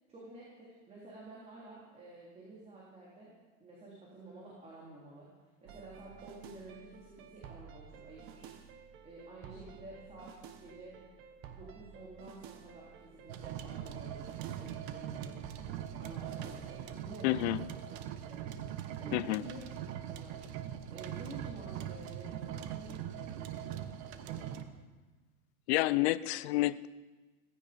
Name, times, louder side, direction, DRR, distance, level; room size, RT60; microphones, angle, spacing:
voice 1, 0.1-3.3 3.6-5.3 5.6-8.5 9.0-11.0 11.5-15.4 16.0-18.0 18.3-18.5 19.0-20.5 20.9-24.6, right 2 dB, 15° right, -5 dB, 3.5 m, -51 dB
sound 1, 5.7-17.0, right 7 dB, 30° right, 1.3 m, -52 dB
sound 2, 13.3-24.6, right 10 dB, 50° right, 1.4 m, -41 dB
voice 2, 17.2-17.6 19.1-19.4 25.7-26.9, left 17 dB, 50° left, 16 dB, 0.6 m, -29 dB
17.5 x 16.0 x 5.2 m, 1.2 s
supercardioid pair, 160°, 41 cm